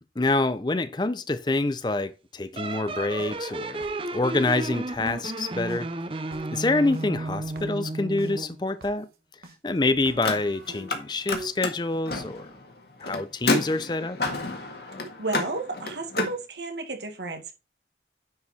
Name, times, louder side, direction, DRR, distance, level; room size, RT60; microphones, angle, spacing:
voice 1, 0.2-3.8 4.1-5.9 6.5-9.1 9.6-12.5 13.0-14.2, left 2 dB, 25° left, 0.5 m, -26 dB
sound 1, 2.6-8.6, right 2 dB, 30° right, 0.6 m, -33 dB
sound 2, 2.6-5.4 5.7-8.3 8.8-8.9 9.4-9.6 9.9-11.5, right 2 dB, 60° right, 1.3 m, -45 dB
Car, 10.1-11.0 11.2-16.3, left 3 dB, 65° left, 1.7 m, -30 dB
voice 2, 15.2-17.6, right 3 dB, 80° right, 1.8 m, -32 dB
9.5 x 4.8 x 4.2 m
head